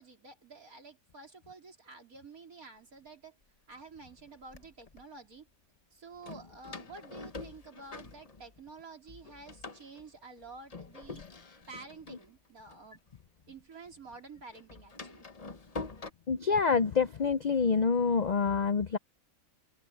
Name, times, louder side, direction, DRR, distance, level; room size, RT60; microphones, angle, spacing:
voice 1, 0.0-3.3 3.7-5.5 5.9-11.2 11.7-13.0 13.5-15.3, right 4 dB, 75° right, 4.2 m, -50 dB
Door, 3.1-3.2 3.9-5.0 6.2-8.8 9.1-13.6 13.9-16.1, left 3 dB, 30° left, 1.0 m, -46 dB
voice 2, 16.3-19.0, left 5 dB, 90° left, 0.3 m, -27 dB
open air
omnidirectional pair, 1.5 m